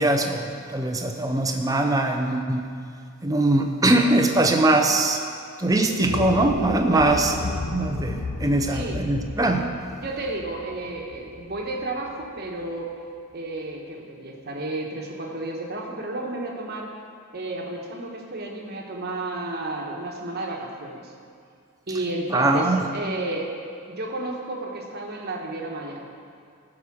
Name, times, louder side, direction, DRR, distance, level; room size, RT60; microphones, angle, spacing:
voice 1, 0.0-2.6 3.2-5.2 5.6-7.3 7.7-9.7 22.3-22.8, right 2 dB, 15° right, 4 dB, 0.6 m, -21 dB
sound 1, 5.8-12.2, left 2 dB, 90° left, 0.8 m, -33 dB
voice 2, 6.8-7.2 8.0-8.1 8.7-9.0 10.0-12.9 13.3-16.9 17.3-21.1 21.9-23.5 23.9-26.0, right 2 dB, 45° right, 0 dB, 1.3 m, -32 dB
14.5 x 4.9 x 6.1 m, 2.3 s
head